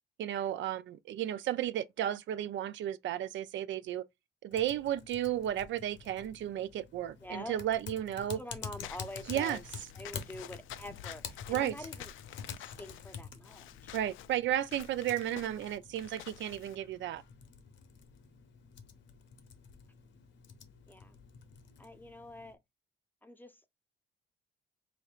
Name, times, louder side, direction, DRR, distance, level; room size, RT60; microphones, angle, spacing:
voice 1, 0.2-4.0 4.4-8.4 9.3-9.6 11.5-11.7 13.9-17.2, right 11 dB, 70° right, 0.4 m, -33 dB
Typing, 4.5-22.5, left 6 dB, 65° left, 0.9 m, -48 dB
voice 2, 7.2-7.6 8.4-9.6 9.9-12.1 12.6-14.0 20.9-21.2 21.8-22.6 23.2-23.7, left 1 dB, 10° left, 0.6 m, -46 dB
Walk footsteps / Squeak, 8.8-16.8, left 12 dB, 80° left, 0.4 m, -50 dB
5.2 x 3.1 x 2.4 m
cardioid pair, 90°, 20 cm